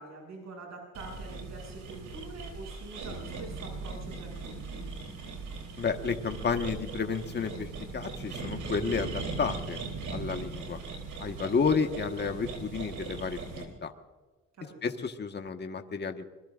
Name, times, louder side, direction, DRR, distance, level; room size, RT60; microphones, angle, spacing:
voice 1, 0.0-4.8 14.6-14.8, right 2 dB, 65° right, 1 dB, 7.0 m, -45 dB
sound 1, 0.9-13.6, right 4 dB, 80° right, 3.5 m, -39 dB
voice 2, 5.8-9.8 10.1-10.8 11.2-13.9 14.8-16.2, left 5 dB, 35° left, 6 dB, 1.4 m, -31 dB
25.5 x 21.0 x 2.5 m, 1.3 s
cardioid pair, 90°, 30 cm